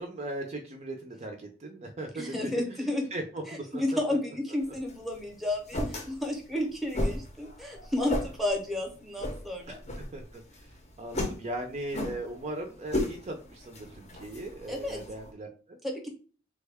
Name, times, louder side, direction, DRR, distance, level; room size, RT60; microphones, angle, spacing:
voice 1, 0.0-2.6 3.1-3.8 4.7-4.8 9.7-9.8 10.1-15.8, right 1 dB, 35° right, 4 dB, 0.4 m, -38 dB
voice 2, 2.1-3.0 3.5-9.8 14.7-15.0 15.8-16.1, left 1 dB, ahead, 2 dB, 0.7 m, -32 dB
sound 1, 4.6-15.3, left 1 dB, 35° left, 0.6 m, -36 dB
3.4 x 2.2 x 3.3 m, 0.38 s
head